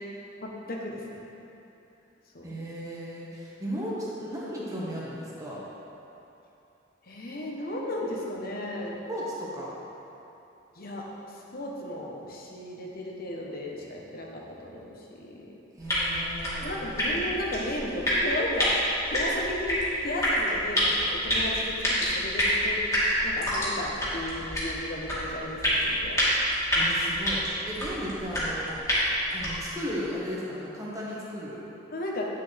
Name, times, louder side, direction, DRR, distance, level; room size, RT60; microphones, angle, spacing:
voice 1, 0.4-1.2 2.3-2.5 7.0-9.0 10.8-15.5 16.6-18.7 19.1-22.8 23.2-26.2 29.5-29.6 31.9-32.3, left 1 dB, 55° left, -1 dB, 1.1 m, -35 dB
voice 2, 2.4-5.6 9.1-9.7 15.8-16.8 26.7-28.8 29.3-31.6, equal, 20° right, -6 dB, 1.4 m, -35 dB
sound 1, 15.8-29.7, equal, 20° left, 2.0 m, -28 dB
9.4 x 6.8 x 3.4 m, 2.9 s
head